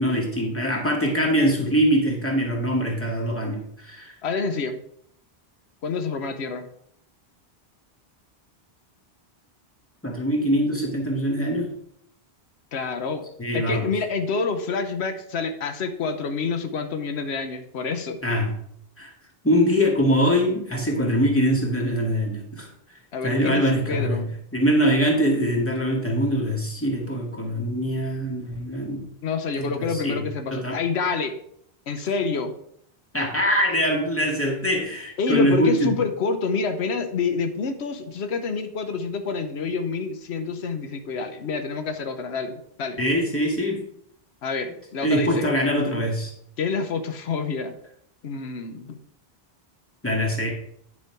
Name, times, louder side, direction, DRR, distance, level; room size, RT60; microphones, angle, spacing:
voice 1, 0.0-4.1 10.0-11.7 13.4-13.9 18.2-18.5 19.0-19.1 19.4-22.7 23.2-24.2 24.5-29.1 29.6-30.2 30.5-30.8 33.1-35.9 43.0-43.8 45.0-46.3 50.0-50.6, equal, 10° left, -1 dB, 1.9 m, -23 dB
voice 2, 4.2-4.8 5.8-6.7 12.7-13.2 13.5-18.2 23.1-24.4 29.2-31.3 31.9-32.5 35.2-43.0 44.4-45.5 46.6-47.8 48.2-49.0, left 4 dB, 90° left, 8 dB, 1.1 m, -27 dB
9.4 x 5.5 x 4.5 m, 0.70 s
omnidirectional pair, 1.1 m